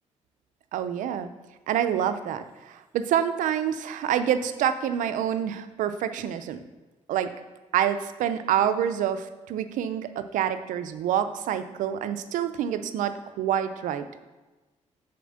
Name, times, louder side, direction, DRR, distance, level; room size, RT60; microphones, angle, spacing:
voice 1, 0.7-1.3 1.7-6.6 7.1-7.3 7.7-14.1, right 9 dB, 90° right, 10 dB, 0.5 m, -27 dB
6.8 x 4.3 x 6.4 m, 1.2 s
cardioid pair, 125°, 13 cm